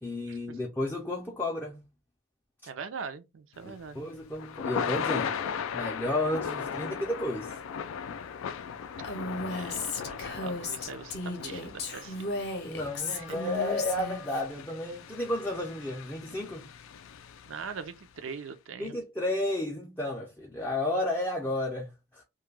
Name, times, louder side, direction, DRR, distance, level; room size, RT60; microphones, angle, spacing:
voice 1, 0.0-1.8 3.6-5.4 5.7-7.6 12.6-16.7 18.8-22.2, left 1 dB, 10° left, 0.4 m, -32 dB
voice 2, 2.7-4.0 9.5-12.2 13.1-13.2 17.5-19.0, right 5 dB, 75° right, 0.4 m, -41 dB
Thunder / Rain, 3.6-17.9, left 7 dB, 80° left, 0.3 m, -38 dB
Female speech woman speaking, 9.0-14.4, left 2 dB, 50° left, 0.6 m, -35 dB
2.2 x 2.1 x 3.2 m
head